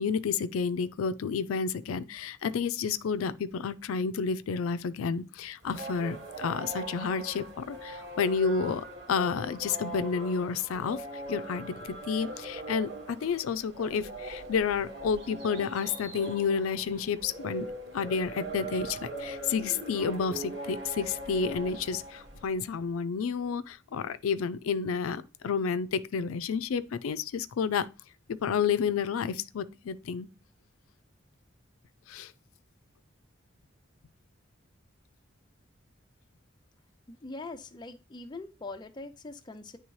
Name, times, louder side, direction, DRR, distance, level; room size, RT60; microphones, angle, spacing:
voice 1, 0.0-27.9 28.4-30.3 32.1-32.3, left 6 dB, 85° left, 0.4 m, -30 dB
sound 1, 5.6-22.6, right 2 dB, 55° right, 1.6 m, -41 dB
voice 2, 37.1-39.8, left 3 dB, 20° left, 0.4 m, -42 dB
9.6 x 3.3 x 3.1 m
head